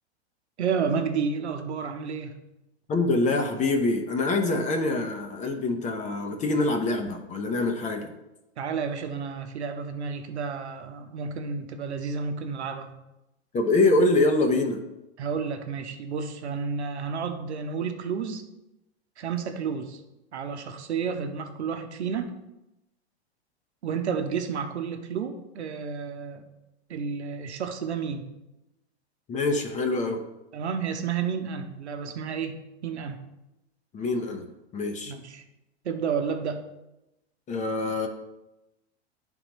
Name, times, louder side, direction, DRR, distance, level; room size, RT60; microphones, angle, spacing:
voice 1, 0.6-2.3 8.6-13.0 15.2-18.4 19.2-20.0 20.3-22.3 23.8-26.4 26.9-28.3 30.5-32.6 32.8-33.2 35.1-35.4 35.8-36.6, right 6 dB, 75° right, 7 dB, 0.9 m, -31 dB
voice 2, 2.9-8.1 13.5-14.8 29.3-30.2 33.9-34.5 34.7-35.1 37.5-38.1, left 2 dB, 20° left, 4 dB, 0.8 m, -25 dB
11.0 x 3.8 x 3.0 m, 0.95 s
hypercardioid pair, 105°, 33 cm